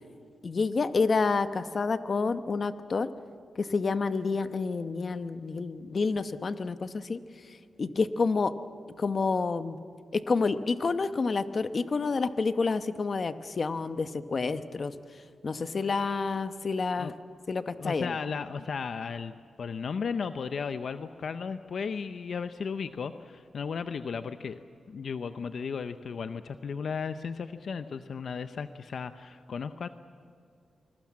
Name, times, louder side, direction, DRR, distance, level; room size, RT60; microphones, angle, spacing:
voice 1, 0.4-3.1 3.6-7.2 7.5-8.5 9.0-9.8 10.1-14.9 15.4-17.1 17.5-18.2, left 4 dB, 45° left, 11 dB, 0.9 m, -29 dB
voice 2, 17.8-24.6 24.9-29.9, left 5 dB, 70° left, 10 dB, 0.7 m, -35 dB
25.5 x 21.0 x 7.5 m, 2.4 s
wide cardioid pair, 110°, 0 cm